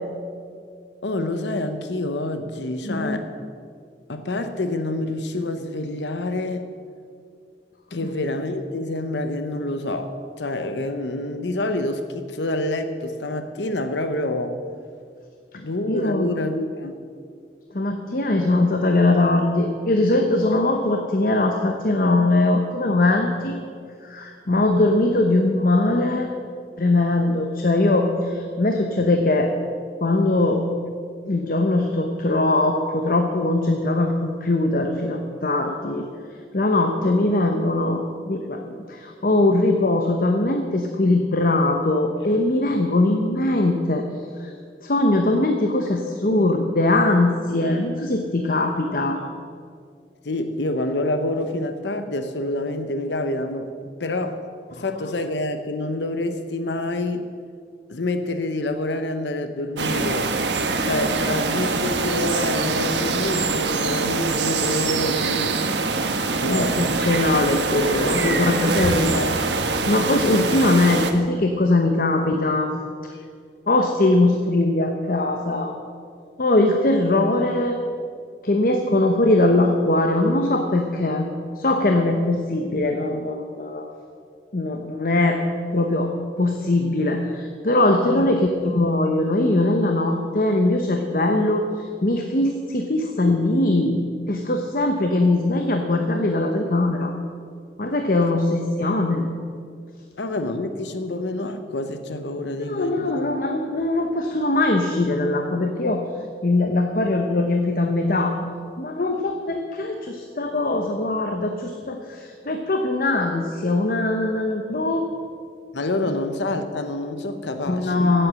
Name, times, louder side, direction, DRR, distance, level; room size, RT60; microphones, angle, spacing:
voice 1, 1.0-3.3 4.1-6.7 7.9-14.6 15.5-17.0 37.0-37.1 50.2-54.4 54.7-57.3 57.9-60.3 60.8-65.6 66.4-66.8 68.1-68.8 69.1-69.3 73.1-73.2 88.1-88.3 98.3-98.4 100.2-103.2 115.7-118.2, left 2 dB, 90° left, 8 dB, 0.8 m, -27 dB
voice 2, 2.8-3.2 7.9-8.1 15.9-16.3 17.7-23.5 24.0-26.3 26.8-29.5 30.0-30.6 31.3-36.1 36.5-44.1 44.4-44.5 44.8-49.2 54.8-54.9 66.5-69.2 69.9-72.7 73.7-75.7 76.4-77.8 78.4-81.3 81.6-83.9 84.5-85.4 85.7-86.1 86.4-94.0 94.3-97.1 97.8-99.3 102.6-106.0 106.4-108.4 108.8-115.0 117.7-118.3, left 2 dB, 50° left, 4 dB, 0.9 m, -21 dB
sound 1, 59.8-71.1, right 4 dB, 85° right, 1.1 m, -24 dB
16.5 x 7.9 x 6.3 m, 2.2 s
head